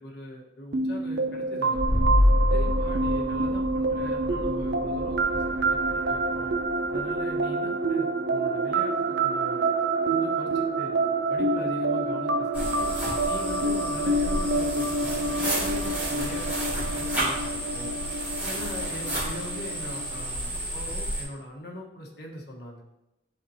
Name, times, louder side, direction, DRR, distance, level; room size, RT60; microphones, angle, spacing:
voice 1, 0.0-1.8 2.5-5.4 5.7-6.5 6.9-8.9 9.2-9.6 10.1-10.9 11.3-12.9 13.3-17.9 18.4-22.8, left 1 dB, 55° left, -1 dB, 1.4 m, -41 dB
sound 1, 0.7-20.3, right 2 dB, 65° right, 0.6 m, -27 dB
sound 2, 1.7-7.3, left 1 dB, 40° right, 2.5 m, -27 dB
sound 3, 12.5-21.2, right 1 dB, 10° right, 2.6 m, -31 dB
11.0 x 4.5 x 2.9 m, 0.93 s
head